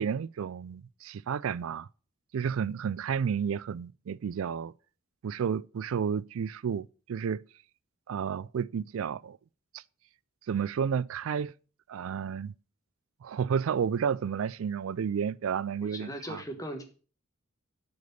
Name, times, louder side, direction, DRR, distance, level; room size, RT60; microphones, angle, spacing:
voice 1, 0.0-1.9 2.3-4.7 5.2-7.4 8.1-9.4 9.7-9.8 10.5-11.5 11.9-12.5 13.2-16.4, right 7 dB, 70° right, 0.3 m, -31 dB
voice 2, 15.8-16.8, equal, 15° left, 1.3 m, -39 dB
7.9 x 5.1 x 6.8 m
head